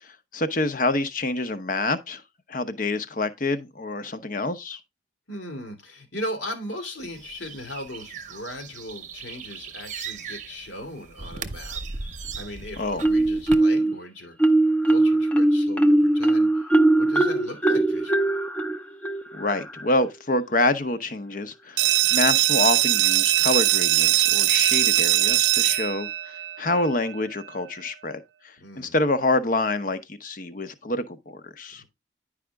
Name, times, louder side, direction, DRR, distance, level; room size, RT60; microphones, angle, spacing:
voice 1, 0.0-2.2 2.5-4.8 12.8-13.0 19.3-28.2 28.4-31.8, left 2 dB, 45° left, 0.8 m, -27 dB
voice 2, 5.3-14.4 14.7-18.4 28.6-28.9 31.8-31.9, left 1 dB, 80° left, 2.5 m, -38 dB
sound 1, 7.0-13.6, right 5 dB, 40° right, 0.8 m, -38 dB
Marimba xylophone, 13.0-13.9 14.4-19.9, right 2 dB, 10° left, 0.6 m, -20 dB
sound 2, 21.8-27.2, right 16 dB, 75° right, 0.4 m, -21 dB
10.5 x 5.0 x 3.4 m
head